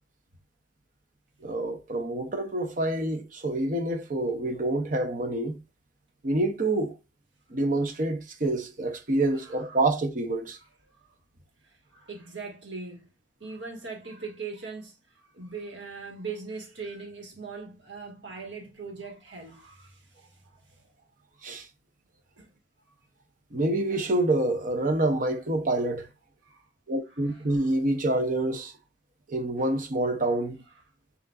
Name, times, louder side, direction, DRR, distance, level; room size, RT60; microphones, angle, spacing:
voice 1, 1.4-5.6 6.2-6.9 7.5-10.6 21.4-21.7 23.5-26.1 26.9-28.7 29.3-30.6, right 2 dB, 45° right, 0.9 m, -27 dB
voice 2, 9.3-9.8 10.8-11.1 11.6-13.1 13.4-20.9 22.4-22.5 22.9-23.0 26.4-26.7 27.2-27.8 30.2-30.4, right 4 dB, 80° right, 1.8 m, -41 dB
6.2 x 3.0 x 2.5 m
head